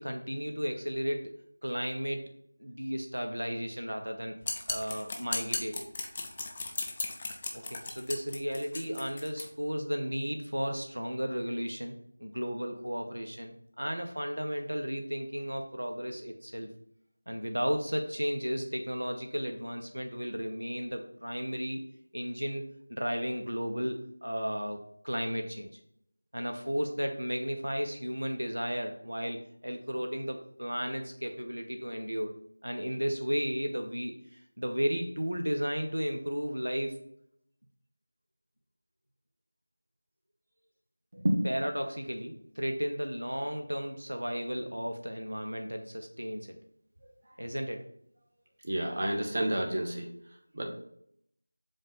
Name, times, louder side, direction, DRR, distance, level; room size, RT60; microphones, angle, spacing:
voice 1, 0.0-1.3 1.6-2.3 2.6-4.3 4.7-5.9 7.5-16.7 17.3-21.8 22.1-25.7 26.3-32.3 32.6-37.0 41.4-46.6 47.4-47.9, equal, 85° right, 4 dB, 0.9 m, -34 dB
sound 1, 4.4-9.5, left 3 dB, 25° left, 0.6 m, -36 dB
voice 2, 48.6-50.7, right 1 dB, 45° right, 1 dB, 1.1 m, -30 dB
7.5 x 2.5 x 5.2 m, 0.70 s
figure-of-eight pair, 170°, 0 cm